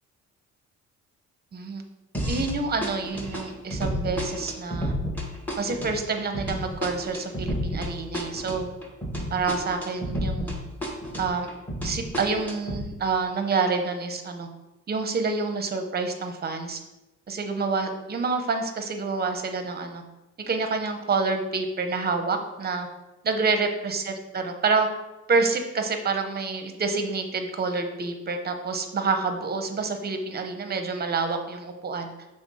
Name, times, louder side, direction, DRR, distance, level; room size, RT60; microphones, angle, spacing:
voice 1, 1.5-1.8 2.3-4.9 5.6-8.7 9.3-10.6 11.2-11.5 11.8-14.5 14.9-16.8 17.3-20.0 20.5-22.9 23.2-24.9 25.3-32.1, right 4 dB, 30° right, 6 dB, 0.6 m, -27 dB
sound 1, 2.1-2.6 2.8-10.6 10.8-12.8, equal, 5° left, 1.0 m, -31 dB
5.9 x 2.0 x 4.0 m, 1.0 s
cardioid pair, 90°, 30 cm